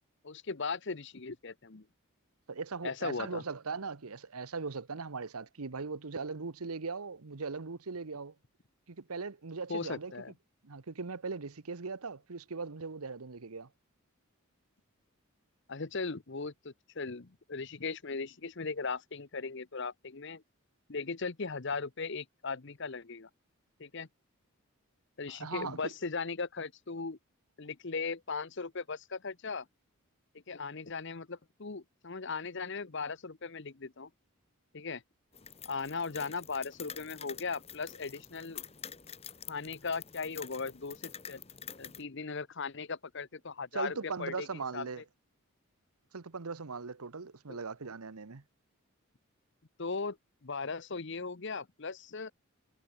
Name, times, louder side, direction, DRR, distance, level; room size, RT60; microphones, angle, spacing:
voice 1, 0.2-1.8 2.8-3.4 9.7-10.3 15.7-20.4 20.9-23.3 23.8-24.1 25.2-27.2 27.6-29.7 30.5-34.1 34.7-35.0 35.6-38.7 39.5-41.4 41.8-44.5 44.7-45.0 47.5-47.6 49.8-50.2 50.4-52.3, left 4 dB, 55° left, 0.9 m, -38 dB
voice 2, 2.5-8.3 8.9-10.1 10.6-13.7 25.3-25.9 43.7-45.0 46.1-48.4, right 4 dB, 80° right, 1.0 m, -39 dB
sound 1, 35.3-42.0, left 8 dB, 25° left, 1.2 m, -47 dB
head